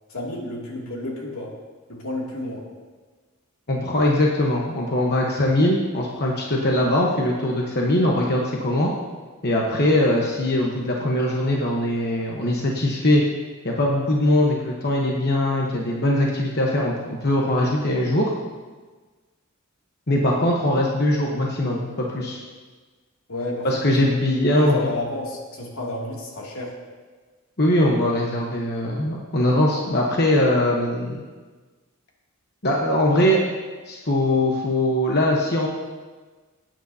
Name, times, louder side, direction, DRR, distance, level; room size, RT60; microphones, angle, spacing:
voice 1, 0.1-1.5 1.9-2.6 23.3-24.1 24.5-26.7, left 1 dB, 90° left, -3 dB, 2.6 m, -31 dB
voice 2, 3.7-8.9 9.4-13.2 13.6-18.3 20.1-22.4 23.6-24.8 27.6-31.2 32.6-33.5 33.9-35.7, left 1 dB, 50° left, -2 dB, 1.1 m, -21 dB
19.5 x 9.1 x 2.8 m, 1.4 s
head